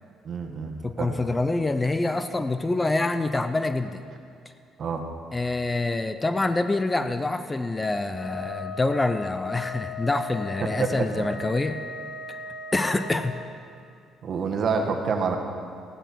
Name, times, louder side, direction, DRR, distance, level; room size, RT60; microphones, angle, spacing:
voice 1, 0.2-1.2 4.8-5.0 10.6-11.3 14.2-15.4, right 5 dB, 50° right, 3 dB, 1.5 m, -28 dB
voice 2, 0.8-4.0 5.3-11.8 12.3-12.4 12.7-13.4, left 2 dB, 20° left, 10 dB, 0.6 m, -26 dB
Wind instrument woodwind instrument, 8.1-13.4, left 4 dB, 45° left, 1.6 m, -38 dB
15.5 x 11.5 x 4.7 m, 2.3 s
cardioid pair, 95°, 0 cm